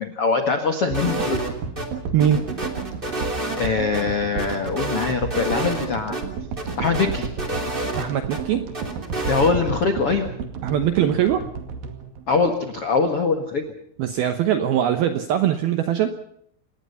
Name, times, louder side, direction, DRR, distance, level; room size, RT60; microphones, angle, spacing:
voice 1, 0.0-1.4 3.6-6.2 6.8-7.3 9.3-10.3 12.3-13.6, left 4 dB, 70° left, 6 dB, 1.4 m, -22 dB
sound 1, 0.9-1.9 2.2-4.0 4.4-5.9 6.1-6.2 6.6-8.4 8.7-9.5, right 1 dB, 15° right, 2.2 m, -29 dB
sound 2, 0.9-13.2, right 5 dB, 55° right, 3.5 m, -32 dB
voice 2, 8.0-8.6 10.6-11.4 14.0-16.1, right 10 dB, 75° right, 9 dB, 2.2 m, -21 dB
27.0 x 20.0 x 5.6 m, 0.70 s
omnidirectional pair, 5.7 m